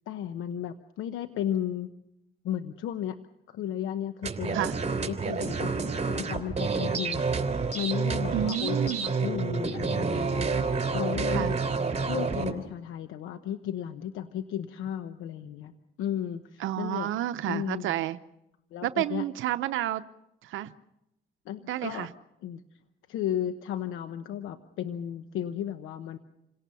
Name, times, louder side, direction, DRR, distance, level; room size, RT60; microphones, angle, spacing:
voice 1, 0.1-1.9 2.4-3.2 3.5-4.7 5.1-7.2 7.7-11.6 12.1-15.7 16.0-17.1 17.5-17.9 18.7-19.2 21.4-22.1 22.4-22.6 23.1-26.2, left 10 dB, 90° left, 9 dB, 1.0 m, -34 dB
sound 1, 4.2-12.5, right 4 dB, 35° right, 3.4 m, -29 dB
voice 2, 8.3-9.1 11.3-11.5 16.6-18.2 18.8-20.0 20.4-20.7 21.7-22.1, right 13 dB, 80° right, 12 dB, 0.7 m, -30 dB
28.0 x 18.0 x 6.9 m, 0.88 s
cardioid pair, 90°, 20 cm